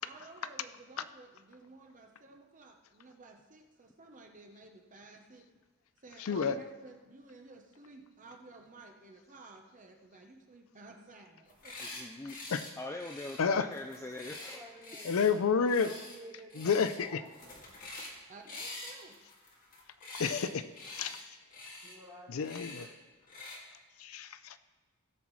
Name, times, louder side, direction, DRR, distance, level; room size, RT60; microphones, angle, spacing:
voice 1, 0.0-5.5 6.0-11.9 18.3-19.1, right 3 dB, 35° right, 3 dB, 0.9 m, -53 dB
voice 2, 6.2-6.6 12.5-12.6 13.4-13.7 15.0-15.9 16.6-17.2 20.2-21.2 22.3-22.8 24.0-24.6, left 6 dB, 75° left, 12 dB, 0.5 m, -30 dB
sound 1, 11.5-12.0 12.3-12.7 13.0-15.3 15.7-16.2 16.5-17.0 17.2-18.2 18.5-20.5 20.7-21.2 21.5-21.9 22.4-22.9 23.3-23.6, left 2 dB, 40° left, 2.2 m, -46 dB
voice 3, 11.8-14.8, left 2 dB, 15° left, 4 dB, 0.4 m, -43 dB
voice 4, 14.5-17.5 21.8-23.1, right 1 dB, 15° right, -5 dB, 2.4 m, -52 dB
16.5 x 7.2 x 3.2 m, 1.4 s
head